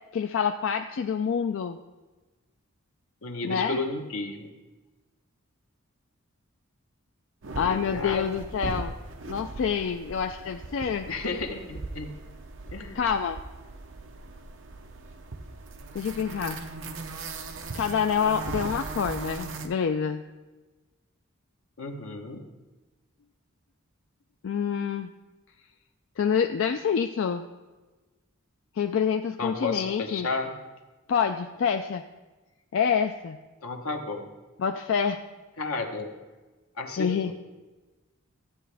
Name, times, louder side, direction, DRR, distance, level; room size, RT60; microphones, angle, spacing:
voice 1, 0.1-1.8 3.4-3.8 7.6-8.9 9.3-11.1 13.0-13.4 15.9-16.6 17.7-20.2 24.4-25.1 26.2-27.4 28.8-30.3 31.1-32.0 32.7-33.4 34.6-35.2 37.0-37.3, left 7 dB, 65° left, 6 dB, 0.3 m, -27 dB
voice 2, 3.2-4.5 7.7-8.3 11.1-12.1 12.7-13.0 21.8-22.4 29.4-30.5 33.6-34.3 35.6-36.1 36.8-37.3, left 3 dB, 90° left, 4 dB, 1.0 m, -32 dB
sound 1, 7.4-19.7, right 3 dB, 65° right, 0.7 m, -39 dB
13.0 x 8.5 x 3.4 m, 1.2 s
head